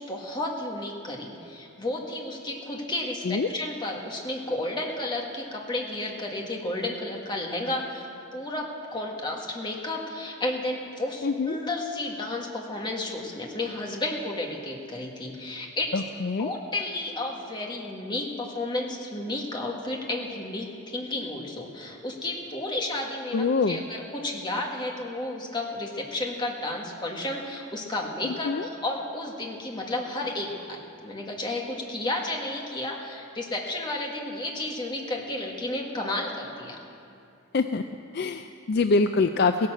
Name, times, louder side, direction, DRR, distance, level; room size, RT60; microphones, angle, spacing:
voice 1, 0.0-15.9 16.4-28.5 28.8-36.8, left 2 dB, 20° left, 0 dB, 1.7 m, -32 dB
voice 2, 11.2-11.6 15.9-16.5 23.3-23.9 28.2-28.7 37.5-37.8 38.1-39.7, left 4 dB, 50° left, 8 dB, 0.4 m, -25 dB
16.5 x 11.5 x 7.6 m, 2.5 s
head